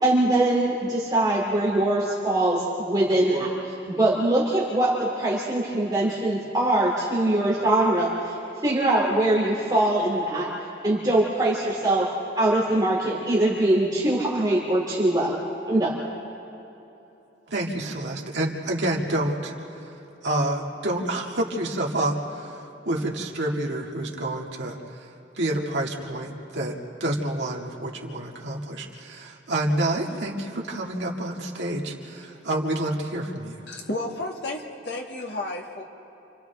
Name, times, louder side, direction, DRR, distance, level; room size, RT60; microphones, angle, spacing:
voice 1, 0.0-8.4 8.6-10.5 10.8-12.1 12.4-15.3 15.6-16.0, right 1 dB, 20° right, -6 dB, 2.9 m, -22 dB
voice 2, 17.5-19.5 20.2-25.1 25.4-26.7 27.0-33.6, right 1 dB, 75° right, -1 dB, 2.2 m, -28 dB
voice 3, 33.7-35.8, left 2 dB, 65° left, 0 dB, 2.0 m, -32 dB
29.0 x 26.0 x 3.5 m, 3.0 s
head